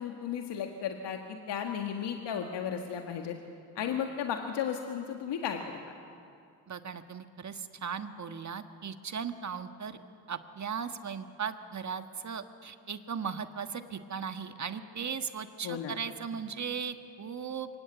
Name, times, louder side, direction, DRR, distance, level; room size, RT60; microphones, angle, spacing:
voice 1, 0.0-3.3 3.8-5.8 15.6-16.0, left 8 dB, 60° left, 3 dB, 1.8 m, -34 dB
voice 2, 6.7-10.0 10.3-17.7, right 6 dB, 35° right, 8 dB, 1.6 m, -37 dB
24.5 x 19.0 x 8.0 m, 2.5 s
supercardioid pair, 60°, 46 cm